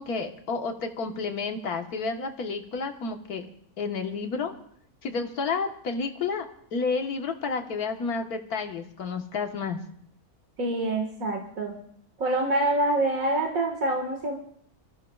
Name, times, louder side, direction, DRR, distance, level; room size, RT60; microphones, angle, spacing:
voice 1, 0.0-3.5 3.8-4.5 5.0-9.8, left 4 dB, 85° left, 5 dB, 1.8 m, -30 dB
voice 2, 10.6-11.7 12.2-14.4, right 2 dB, 65° right, 1 dB, 2.2 m, -26 dB
27.5 x 15.0 x 2.4 m, 0.64 s
omnidirectional pair, 1.6 m